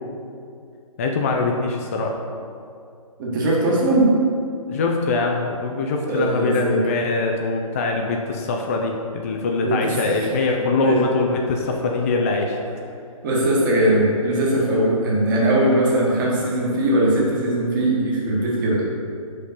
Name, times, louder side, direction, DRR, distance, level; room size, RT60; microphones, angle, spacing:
voice 1, 1.0-2.2 4.7-12.6, left 3 dB, 25° left, 1 dB, 0.3 m, -23 dB
voice 2, 3.2-4.1 6.1-6.8 9.6-9.8 10.0-10.1 10.8-11.0 13.2-18.8, right 1 dB, 35° right, -4 dB, 1.4 m, -20 dB
5.2 x 5.1 x 4.1 m, 2.4 s
figure-of-eight pair, 140°, 18 cm